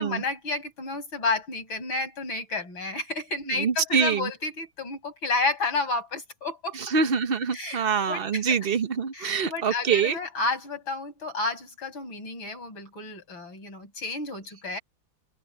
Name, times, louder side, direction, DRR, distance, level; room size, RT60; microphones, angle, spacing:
voice 1, 0.0-6.8 7.5-8.6 9.1-14.8, left 3 dB, 80° left, 7.3 m, -31 dB
voice 2, 3.5-4.3 6.7-10.2, right 6 dB, 45° right, 0.8 m, -25 dB
omnidirectional pair, 2.2 m